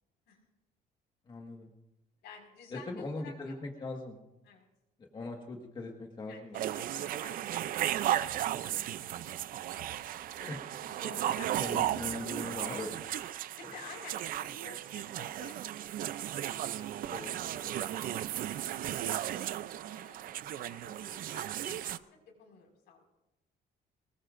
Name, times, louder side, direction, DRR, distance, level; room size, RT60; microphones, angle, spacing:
voice 1, 1.3-1.7 2.7-4.2 5.0-6.7 8.5-8.9 10.5-10.6 11.6-13.0 13.7-13.8 17.1-17.4, left 2 dB, 30° left, 1 dB, 1.6 m, -41 dB
voice 2, 2.2-3.6 4.5-4.7 6.3-8.6 9.0-10.0 10.2-12.1 13.6-16.1 16.6-19.5 19.9-23.1, left 5 dB, 85° left, 1 dB, 5.4 m, -53 dB
sound 1, 6.5-22.0, right 12 dB, 60° right, 0.5 m, -35 dB
24.5 x 19.5 x 2.6 m, 0.91 s
cardioid pair, 170°, 17 cm